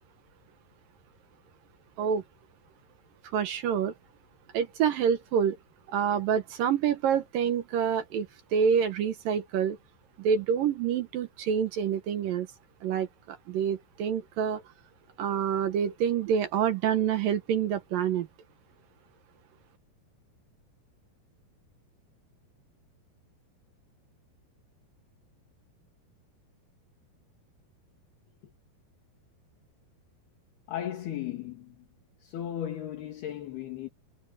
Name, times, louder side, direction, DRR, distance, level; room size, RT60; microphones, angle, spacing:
voice 1, 3.3-3.9 4.5-5.6 5.9-9.8 10.2-12.5 12.8-14.6 15.2-18.3, right 8 dB, 70° right, 2.4 m, -27 dB
voice 2, 30.7-31.8 32.2-33.9, left 11 dB, 65° left, 3.9 m, -36 dB
omnidirectional pair, 5.0 m